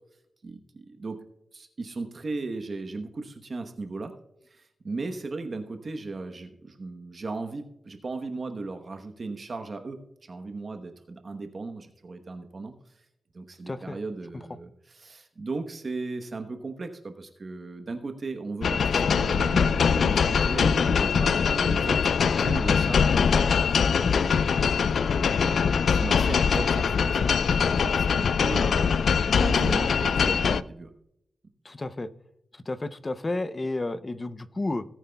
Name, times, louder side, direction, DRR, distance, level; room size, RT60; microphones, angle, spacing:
voice 1, 0.4-1.2 1.5-4.1 4.4-13.0 13.3-22.0 22.4-30.9, right 3 dB, 45° right, 6 dB, 1.0 m, -37 dB
voice 2, 13.7-14.0 14.3-14.5 31.6-32.1 32.5-34.9, left 2 dB, 25° left, 13 dB, 0.6 m, -32 dB
sound 1, 18.6-30.6, left 6 dB, 75° left, 0.3 m, -22 dB
18.0 x 9.1 x 2.3 m, 0.80 s
wide cardioid pair, 115°, 0 cm